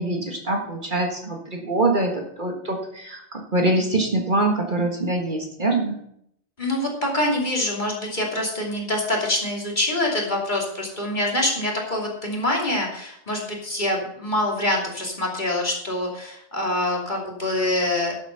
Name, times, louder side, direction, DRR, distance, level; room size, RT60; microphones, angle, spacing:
voice 1, 0.0-6.0, right 2 dB, 40° right, 2 dB, 1.7 m, -24 dB
voice 2, 6.6-18.2, left 1 dB, 40° left, -2 dB, 3.0 m, -25 dB
11.5 x 8.2 x 5.6 m, 0.71 s
omnidirectional pair, 1.2 m